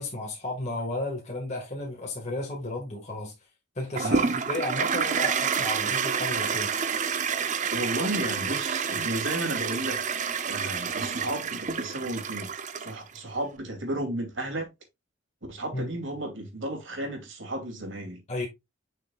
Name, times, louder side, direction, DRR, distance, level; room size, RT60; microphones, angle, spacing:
voice 1, 0.0-3.3 3.8-6.7 15.7-15.9 18.3-18.5, left 2 dB, 35° left, 1.8 m, -33 dB
Toilet flush, 4.0-13.2, right 6 dB, 40° right, 0.6 m, -28 dB
voice 2, 4.0-4.3 7.6-10.0 10.5-12.5 12.8-14.7 15.5-18.2, right 1 dB, 65° right, 2.7 m, -33 dB
6.7 x 6.1 x 2.4 m
head